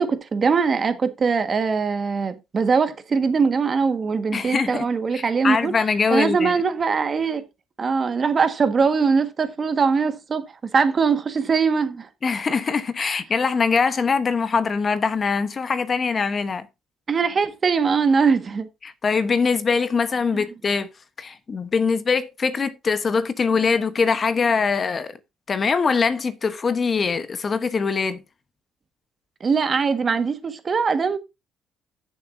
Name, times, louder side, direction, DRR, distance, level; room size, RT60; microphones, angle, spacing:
voice 1, 0.0-5.7 6.1-7.4 7.8-10.4 10.7-12.1 17.1-18.7 20.3-20.4 29.4-31.2, right 5 dB, 35° right, 1.5 m, -21 dB
voice 2, 4.3-4.8 5.1-6.5 12.2-16.7 18.8-20.9 21.2-25.2 25.5-28.2, left 5 dB, 35° left, 1.0 m, -22 dB
15.0 x 7.1 x 2.6 m
cardioid pair, 125°, 0 cm